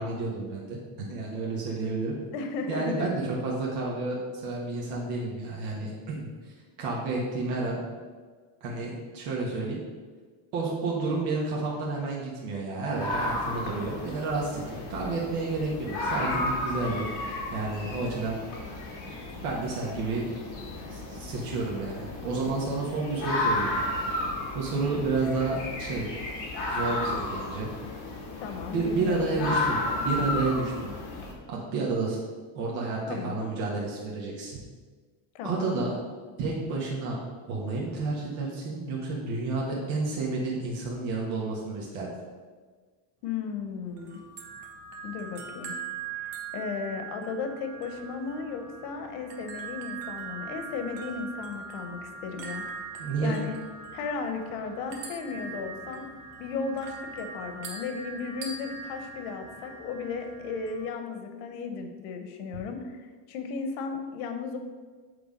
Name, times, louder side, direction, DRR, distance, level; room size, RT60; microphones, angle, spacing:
voice 1, 0.0-2.2 2.7-6.5 6.8-7.8 8.6-9.8 10.5-18.4 19.4-20.2 20.9-26.1 26.7-27.7 28.7-29.8 30.0-30.9 31.5-32.2 32.5-34.6 35.4-36.0 36.4-37.2 37.5-42.1 53.0-53.4, right 3 dB, 90° right, -4 dB, 1.6 m, -30 dB
voice 2, 2.3-3.1 28.4-29.6 29.9-30.1 33.1-33.5 35.3-35.8 43.2-44.2 45.0-45.8 46.2-52.6 53.2-53.6 53.9-56.0 56.4-64.6, left 5 dB, 90° left, 6 dB, 1.0 m, -35 dB
sound 1, 12.9-31.3, left 2 dB, 40° left, 1.7 m, -33 dB
sound 2, 44.0-60.8, right 5 dB, 75° right, 1.3 m, -41 dB
7.9 x 3.4 x 5.2 m, 1.5 s
cardioid pair, 170°, 46 cm